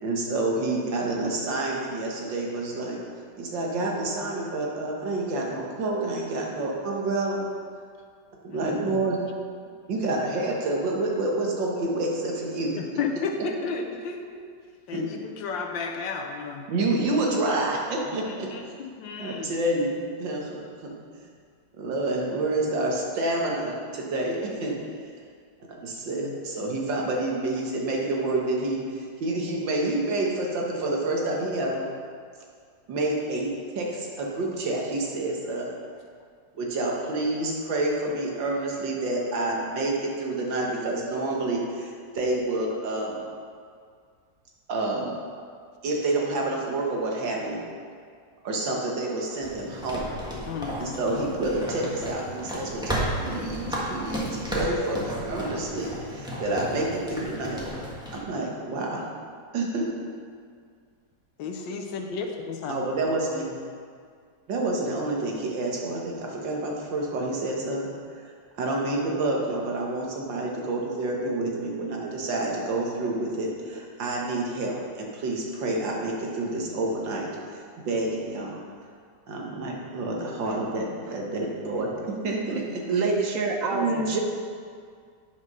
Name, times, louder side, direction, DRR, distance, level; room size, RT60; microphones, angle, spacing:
voice 1, 0.0-3.0 3.4-7.4 8.4-9.2 9.8-12.7 14.9-15.0 16.7-18.5 19.2-21.3 21.8-24.8 25.7-31.8 32.9-35.7 36.5-43.2 44.7-45.1 45.8-47.6 48.4-50.1 50.8-57.6 58.1-59.0 59.5-59.9 62.7-63.6 64.5-67.9 68.6-78.6 79.3-82.8 83.7-84.1, right 2 dB, 85° right, -1 dB, 2.0 m, -28 dB
voice 2, 8.5-9.1 12.8-14.4 14.9-16.7 18.0-19.5 26.2-26.3 26.6-26.7 48.7-48.8 50.5-51.0 61.4-62.8, left 5 dB, 90° left, 3 dB, 1.6 m, -33 dB
sound 1, 49.4-58.2, equal, 5° right, 1.1 m, -33 dB
voice 3, 82.5-84.2, right 4 dB, 60° right, 2 dB, 0.9 m, -27 dB
9.1 x 5.2 x 5.4 m, 2.1 s
omnidirectional pair, 2.0 m